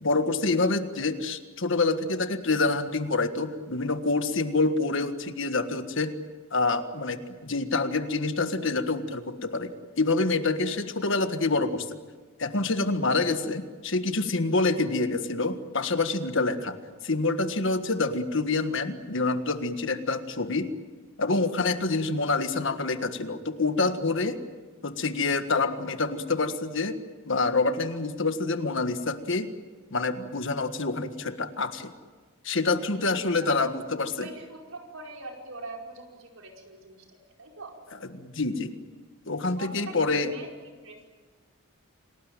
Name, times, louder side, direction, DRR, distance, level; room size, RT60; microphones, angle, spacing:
voice 1, 0.0-6.1 6.5-12.0 12.4-16.8 17.0-20.7 21.2-24.4 24.8-27.0 27.2-29.5 29.9-31.9 32.4-34.3 38.1-38.7 39.3-40.3, left 3 dB, 60° left, 9 dB, 1.6 m, -27 dB
voice 2, 32.7-33.5 34.2-37.7 39.6-40.1 40.3-40.5 40.8-41.1, right 2 dB, 75° right, 1 dB, 5.1 m, -43 dB
28.0 x 19.0 x 9.1 m, 1.4 s
head